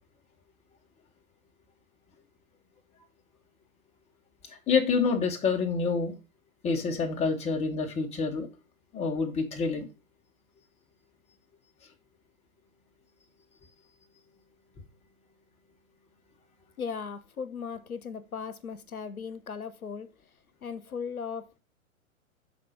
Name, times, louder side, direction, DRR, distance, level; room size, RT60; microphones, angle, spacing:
voice 1, 4.5-6.1 6.6-8.5 8.9-9.9, left 5 dB, 15° left, 1.1 m, -27 dB
voice 2, 16.8-20.1 20.6-21.6, left 6 dB, 90° left, 0.7 m, -37 dB
5.8 x 4.0 x 4.9 m
figure-of-eight pair, 110°, 42 cm